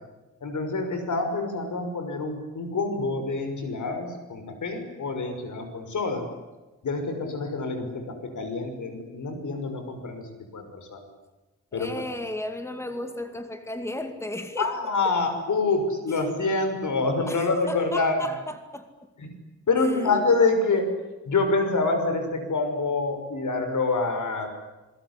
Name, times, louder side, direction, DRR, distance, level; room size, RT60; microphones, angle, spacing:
voice 1, 0.4-6.3 6.8-10.2 10.5-11.1 11.7-11.9 14.6-18.3 19.2-19.3 19.7-20.9 21.2-24.5, left 3 dB, 90° left, 6 dB, 6.1 m, -26 dB
voice 2, 11.7-15.2 16.1-16.3 17.3-18.9 19.8-20.2, left 1 dB, 10° left, 7 dB, 2.3 m, -35 dB
27.5 x 21.0 x 9.9 m, 1.1 s
wide cardioid pair, 165°, 29 cm